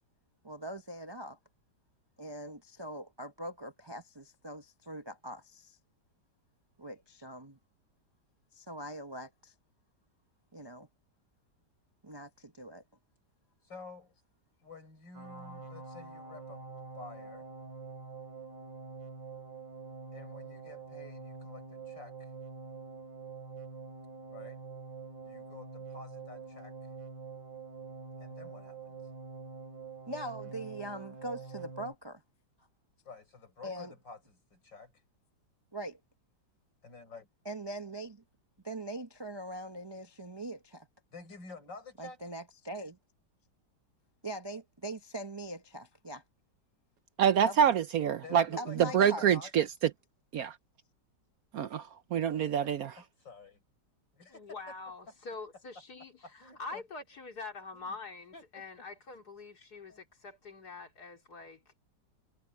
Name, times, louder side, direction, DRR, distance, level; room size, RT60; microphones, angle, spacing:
voice 1, 0.4-1.4 2.2-5.8 6.8-7.6 8.5-9.5 10.5-10.9 12.0-12.8 30.1-32.2 33.6-33.9 35.7-36.0 37.4-38.2 38.6-40.9 42.0-43.0 44.2-46.2 47.4-47.6 48.6-49.3, right 1 dB, 25° right, 0.5 m, -42 dB
voice 2, 13.6-14.1 14.6-16.6 17.0-17.5 20.1-22.3 24.3-24.6 25.2-26.7 28.2-29.0 33.0-34.9 36.8-37.3 41.1-42.2 47.6-47.8 48.2-49.7 52.3-53.6 54.1-54.4 56.4-56.8 57.7-57.9 58.3-58.4 59.9-60.0, left 4 dB, 80° left, 6.7 m, -50 dB
sound 1, 15.1-31.9, right 4 dB, 85° right, 5.1 m, -46 dB
voice 3, 47.2-48.5 48.8-49.7 50.3-50.6 51.5-52.9, right 9 dB, 65° right, 1.0 m, -26 dB
voice 4, 54.3-61.7, left 3 dB, 60° left, 3.7 m, -45 dB
omnidirectional pair, 1.9 m